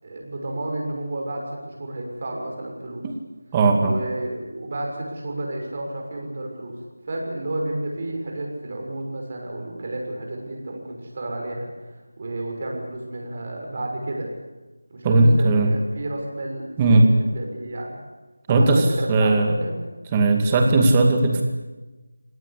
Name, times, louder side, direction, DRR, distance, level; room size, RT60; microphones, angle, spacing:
voice 1, 0.0-3.0 3.8-6.8 7.1-14.3 14.9-18.0 18.5-19.8, right 1 dB, 40° right, 1 dB, 6.4 m, -31 dB
voice 2, 3.5-4.0 15.0-15.7 16.8-17.1 18.5-19.6 20.1-21.4, right 2 dB, 15° right, 3 dB, 2.4 m, -17 dB
26.5 x 18.0 x 8.5 m, 1.2 s
figure-of-eight pair, 170°, 0 cm